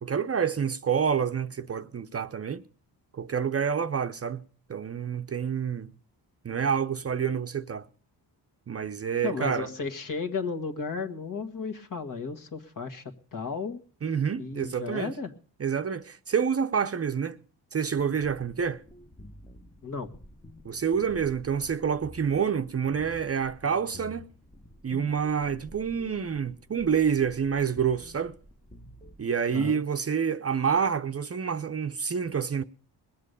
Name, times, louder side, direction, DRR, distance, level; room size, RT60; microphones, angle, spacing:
voice 1, 0.0-2.6 3.1-4.4 4.7-5.9 6.4-7.9 8.7-9.7 14.0-15.1 15.6-17.4 17.7-18.8 20.6-24.3 24.8-28.3 29.2-32.6, right 7 dB, 35° right, 0.7 m, -28 dB
voice 2, 9.2-13.0 13.3-13.8 14.4-15.3 19.8-20.1 29.5-29.8, left 5 dB, 50° left, 1.8 m, -34 dB
sound 1, 17.9-29.2, left 1 dB, 10° left, 0.9 m, -50 dB
20.5 x 7.5 x 6.7 m
cardioid pair, 90°, 42 cm